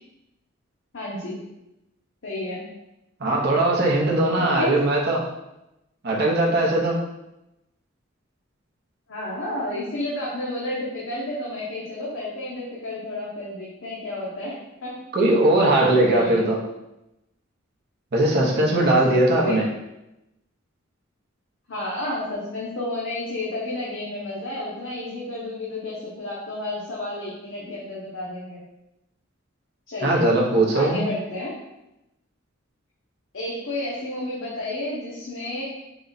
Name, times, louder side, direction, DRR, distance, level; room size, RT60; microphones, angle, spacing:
voice 1, 0.9-1.4 2.2-2.6 4.3-4.8 9.1-15.0 16.1-16.5 18.7-19.6 21.7-28.6 29.9-30.2 30.7-31.5 33.3-35.6, left 1 dB, 65° left, -6 dB, 0.8 m, -31 dB
voice 2, 3.2-5.2 6.0-7.0 15.1-16.6 18.1-19.7 30.0-31.1, right 1 dB, 55° right, -2 dB, 0.8 m, -20 dB
4.0 x 2.3 x 3.9 m, 0.91 s
head